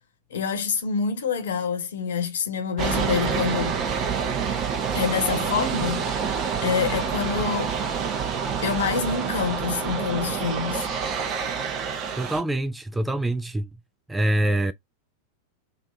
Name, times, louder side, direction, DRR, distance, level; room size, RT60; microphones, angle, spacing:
voice 1, 0.3-3.8 4.9-6.3 6.6-7.7 8.6-10.9, left 6 dB, 60° left, 1.2 m, -26 dB
sound 1, 2.8-12.4, right 6 dB, 35° right, 1.0 m, -27 dB
voice 2, 12.2-13.7 14.1-14.7, right 1 dB, 5° right, 0.3 m, -25 dB
3.3 x 2.9 x 2.7 m
figure-of-eight pair, 90°, 0 cm